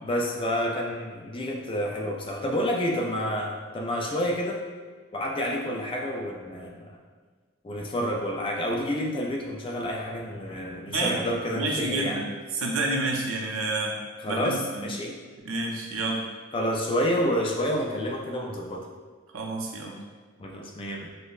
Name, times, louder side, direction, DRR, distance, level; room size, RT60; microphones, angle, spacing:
voice 1, 0.0-4.6 5.1-7.0 7.6-12.2 14.2-15.2 16.5-18.9 20.4-21.1, equal, 25° left, 0 dB, 0.3 m, -29 dB
voice 2, 10.9-11.2 11.5-12.2 12.5-14.0 14.3-14.9 15.4-16.2 19.3-20.0, right 2 dB, 80° right, 0 dB, 0.6 m, -29 dB
5.2 x 2.1 x 2.4 m, 1.5 s
head